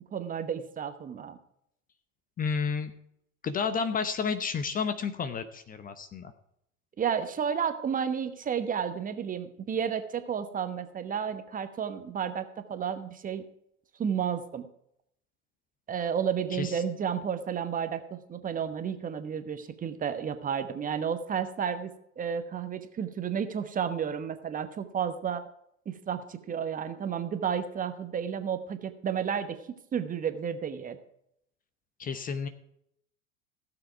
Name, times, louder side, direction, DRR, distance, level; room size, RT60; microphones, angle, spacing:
voice 1, 0.1-1.4 7.0-13.5 14.0-14.7 15.9-25.4 25.9-31.0, right 7 dB, 20° right, 9 dB, 1.0 m, -32 dB
voice 2, 2.4-2.9 3.4-6.3 16.5-16.8 32.0-32.5, left 5 dB, 20° left, 11 dB, 0.8 m, -31 dB
16.0 x 7.3 x 4.6 m, 0.74 s
figure-of-eight pair, 90°, 39 cm